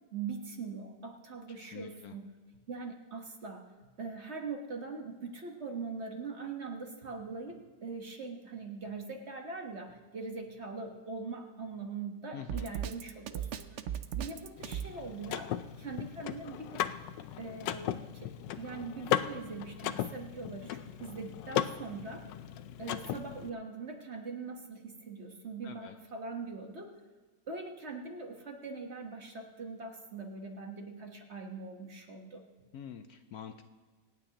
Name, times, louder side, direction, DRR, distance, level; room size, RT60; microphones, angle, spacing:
voice 1, 0.1-2.3 2.7-13.9 14.1-16.9 17.4-18.3 18.6-22.3 22.8-27.0 27.5-32.4, right 4 dB, 40° right, 2 dB, 1.5 m, -42 dB
voice 2, 1.6-2.1 12.3-12.7 25.6-26.0 32.7-33.6, left 8 dB, 65° left, 8 dB, 1.1 m, -46 dB
Drum kit, 12.5-14.9, right 10 dB, 70° right, 0.7 m, -36 dB
Car / Mechanisms, 14.6-23.5, left 11 dB, 85° left, 1.3 m, -37 dB
27.0 x 9.2 x 2.9 m, 1.4 s
omnidirectional pair, 1.9 m